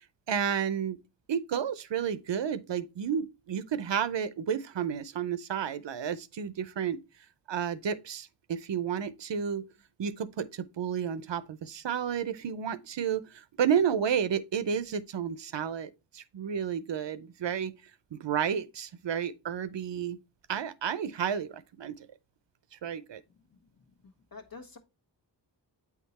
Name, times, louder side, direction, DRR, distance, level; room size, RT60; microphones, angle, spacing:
voice 1, 0.3-1.0 1.3-7.0 7.5-9.7 10.0-17.7 18.1-20.2 20.5-22.1 22.7-23.2, right 8 dB, 80° right, 0.6 m, -31 dB
voice 2, 24.0-24.8, left 4 dB, 55° left, 1.3 m, -47 dB
8.3 x 3.7 x 4.0 m
wide cardioid pair, 45°, 43 cm